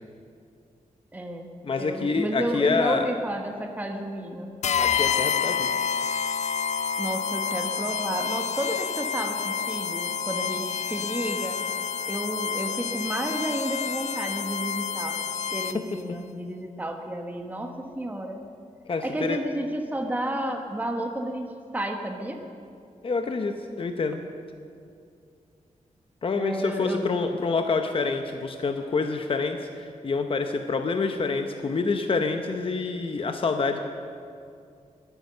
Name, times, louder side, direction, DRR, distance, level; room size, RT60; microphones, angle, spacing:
voice 1, 1.1-1.5 1.8-4.5 7.0-11.6 12.1-18.4 19.0-22.4 26.3-27.1, right 1 dB, 10° right, 4 dB, 1.2 m, -31 dB
voice 2, 1.6-3.1 4.8-5.7 15.7-15.8 18.9-19.4 23.0-24.2 26.2-33.8, left 4 dB, 40° left, 6 dB, 0.9 m, -27 dB
sound 1, 4.6-16.0, left 6 dB, 60° left, 0.5 m, -28 dB
21.5 x 9.6 x 6.6 m, 2.4 s
wide cardioid pair, 115°, 14 cm